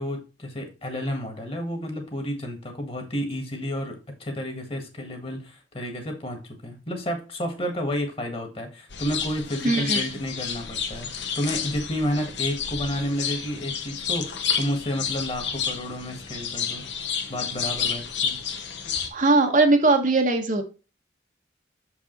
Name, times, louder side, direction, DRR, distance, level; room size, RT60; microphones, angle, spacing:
voice 1, 0.0-16.8 17.3-18.4, equal, 30° left, 5 dB, 1.6 m, -31 dB
sound 1, 8.9-19.1, left 7 dB, 80° left, 1.2 m, -30 dB
voice 2, 9.6-10.1 19.1-20.6, right 3 dB, 45° right, 5 dB, 0.9 m, -20 dB
6.8 x 4.9 x 3.9 m, 0.32 s
head